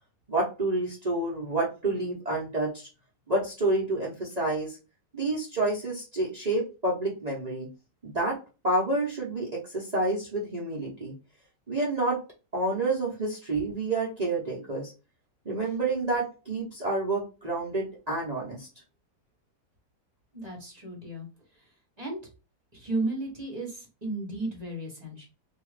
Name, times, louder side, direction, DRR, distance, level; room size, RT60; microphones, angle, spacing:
voice 1, 0.3-2.9 3.3-4.8 5.1-7.7 8.0-8.4 8.6-11.1 11.7-12.2 12.5-14.9 15.4-18.7, right 2 dB, 50° right, -5 dB, 0.5 m, -29 dB
voice 2, 20.3-21.3 22.0-22.2 22.7-25.3, right 2 dB, 30° right, -2 dB, 0.8 m, -34 dB
2.8 x 2.4 x 3.1 m, 0.31 s
omnidirectional pair, 1.9 m